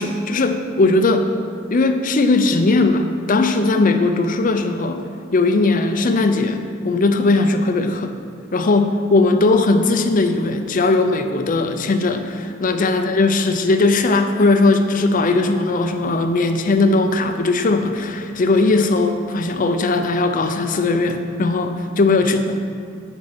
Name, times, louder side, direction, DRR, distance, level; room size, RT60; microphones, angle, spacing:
voice 1, 0.0-1.3 1.7-5.0 5.3-8.1 8.5-22.6, left 3 dB, 45° left, 7 dB, 0.5 m, -18 dB
8.8 x 4.2 x 6.0 m, 2.3 s
head